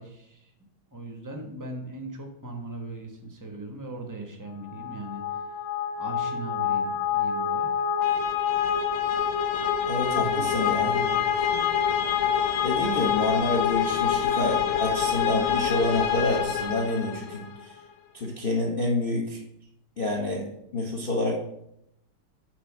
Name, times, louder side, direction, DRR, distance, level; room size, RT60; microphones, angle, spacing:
voice 1, 0.0-5.4 6.0-7.7 10.0-11.6, right 2 dB, 25° right, 3 dB, 0.4 m, -39 dB
sound 1, 4.7-17.5, left 8 dB, 80° left, 1.6 m, -26 dB
voice 2, 9.9-11.0 12.6-17.7 18.1-19.4 20.0-20.5 20.7-21.4, left 2 dB, 45° left, 0 dB, 0.7 m, -28 dB
7.6 x 4.4 x 6.0 m, 0.80 s
omnidirectional pair, 2.3 m